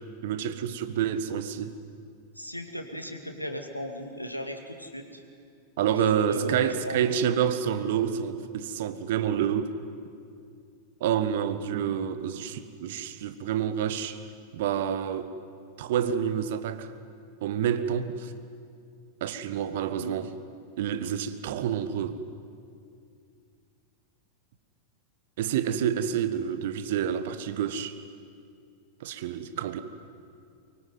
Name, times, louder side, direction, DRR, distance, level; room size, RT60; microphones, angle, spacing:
voice 1, 0.2-1.7 5.8-9.7 11.0-14.2 14.5-15.3 15.8-16.9 17.4-18.3 19.2-20.3 20.8-22.2 25.4-28.0 29.0-29.8, right 9 dB, 55° right, 1.5 m, -28 dB
voice 2, 2.4-5.2 6.3-7.1 20.0-20.1, equal, 90° left, 2.3 m, -36 dB
24.0 x 23.0 x 9.5 m
figure-of-eight pair, 90°, 0 cm